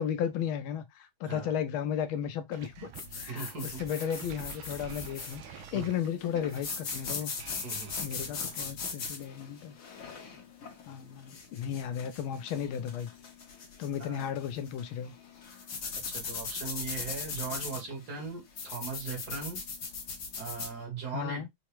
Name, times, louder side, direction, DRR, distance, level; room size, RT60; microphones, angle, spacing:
voice 1, 0.0-2.9 3.2-7.3 8.0-9.8 10.9-13.1 13.8-15.1 21.1-21.5, left 9 dB, 80° left, 1.4 m, -34 dB
voice 2, 1.2-1.6 3.3-3.8 5.7-6.0 7.6-7.9 14.0-14.3 15.9-19.6 20.4-21.5, right 4 dB, 55° right, 1.8 m, -39 dB
sound 1, 2.5-8.8, right 5 dB, 85° right, 1.5 m, -48 dB
sound 2, 2.9-20.7, left 5 dB, 55° left, 1.0 m, -40 dB
4.6 x 2.1 x 2.9 m
omnidirectional pair, 2.2 m